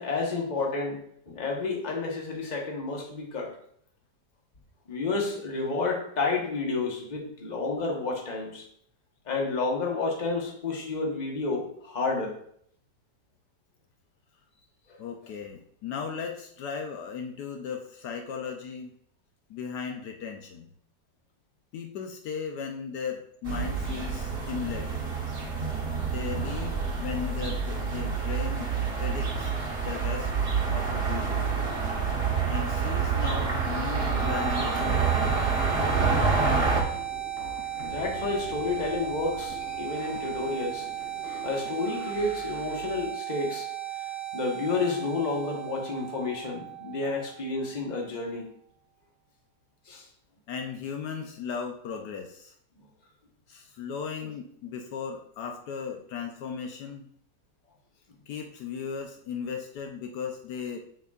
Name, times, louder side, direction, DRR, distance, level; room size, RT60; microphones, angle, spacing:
voice 1, 0.0-3.5 4.9-8.6 9.3-12.4 37.9-40.9 41.4-43.7 44.3-48.4 49.9-50.1 54.2-54.3, left 3 dB, 30° left, -1 dB, 1.1 m, -30 dB
voice 2, 15.0-18.9 19.5-20.7 21.7-25.1 26.0-28.7 29.0-29.5 29.8-30.3 30.6-31.5 32.5-35.1 50.5-52.5 53.5-57.1 58.3-60.8, left 6 dB, 75° left, 3 dB, 1.2 m, -36 dB
sound 1, 23.5-36.8, right 5 dB, 40° right, 1.2 m, -27 dB
sound 2, 33.9-47.9, right 12 dB, 60° right, 1.5 m, -36 dB
sound 3, 35.5-43.1, left 3 dB, 45° left, 0.9 m, -44 dB
6.8 x 6.2 x 2.4 m, 0.64 s
omnidirectional pair, 1.8 m